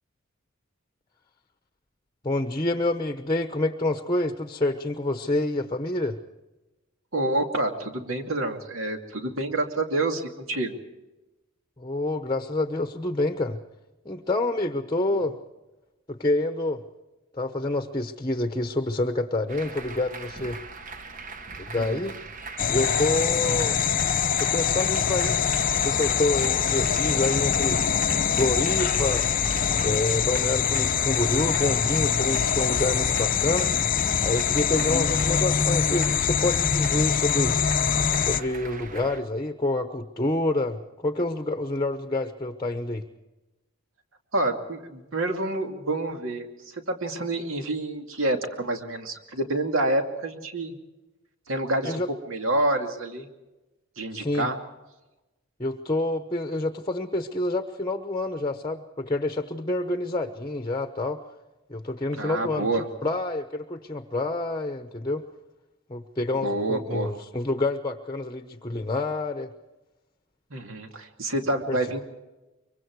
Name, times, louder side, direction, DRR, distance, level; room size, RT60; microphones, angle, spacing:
voice 1, 2.2-6.2 11.8-13.6 14.0-15.4 16.1-16.8 17.3-20.6 21.6-22.1 22.7-23.8 24.4-25.4 25.7-27.8 28.3-29.3 29.8-33.7 34.2-37.6 38.2-43.0 51.8-52.1 54.1-54.5 55.6-61.2 61.7-62.7 63.0-65.2 65.9-69.5 71.7-71.8, left 2 dB, 20° left, 8 dB, 0.9 m, -27 dB
voice 2, 7.1-10.8 15.2-15.3 21.7-22.1 23.6-23.7 44.3-46.5 46.7-50.7 51.5-52.0 52.3-53.3 54.0-54.6 62.2-62.9 66.4-67.1 70.5-72.0, right 2 dB, 70° right, 5 dB, 2.5 m, -28 dB
sound 1, 19.5-39.2, right 3 dB, 40° right, 1.1 m, -39 dB
sound 2, 22.6-38.4, left 7 dB, 40° left, 0.6 m, -24 dB
24.0 x 24.0 x 4.7 m, 1.1 s
head